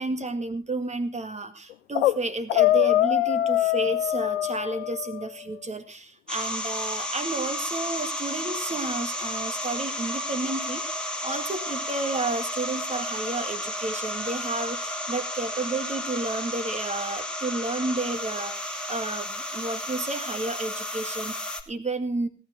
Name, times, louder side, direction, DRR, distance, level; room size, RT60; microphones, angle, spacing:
voice 1, 0.0-22.3, right 2 dB, 20° right, 10 dB, 2.0 m, -31 dB
sound 1, 1.7-2.2 2.5-5.3, left 13 dB, 70° left, 0.8 m, -23 dB
sound 2, 6.3-21.6, left 1 dB, ahead, 2.4 m, -32 dB
18.0 x 10.0 x 4.9 m, 0.33 s
figure-of-eight pair, 60°, 37 cm